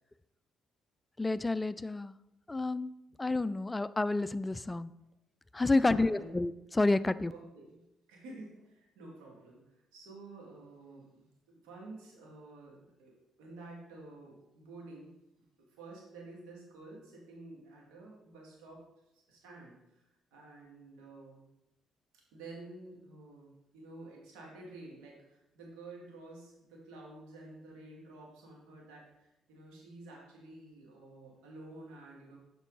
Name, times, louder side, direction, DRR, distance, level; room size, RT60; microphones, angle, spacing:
voice 1, 1.2-2.1 2.5-4.9 5.5-7.3, left 2 dB, 20° left, 15 dB, 0.3 m, -30 dB
voice 2, 5.8-6.4 7.3-7.8 8.1-9.6 9.9-15.1 15.7-18.8 19.3-20.0 20.3-21.5 22.3-32.4, right 2 dB, 80° right, -2 dB, 2.3 m, -50 dB
7.2 x 5.4 x 4.0 m, 0.89 s
hypercardioid pair, 55°, 0 cm